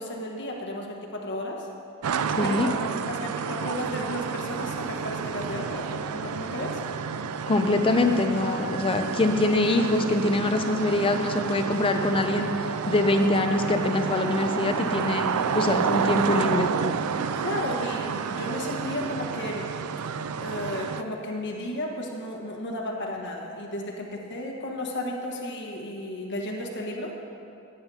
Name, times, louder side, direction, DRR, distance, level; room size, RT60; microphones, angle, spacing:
voice 1, 0.0-1.7 2.4-2.8 3.1-6.8 17.3-19.7 20.4-27.1, left 1 dB, 55° left, 0 dB, 1.4 m, -33 dB
sound 1, 2.0-21.0, right 6 dB, 80° right, 0.4 m, -30 dB
voice 2, 2.4-2.7 7.5-12.5 12.9-16.7, left 2 dB, 25° left, 5 dB, 0.5 m, -24 dB
16.0 x 8.9 x 2.8 m, 2.7 s
head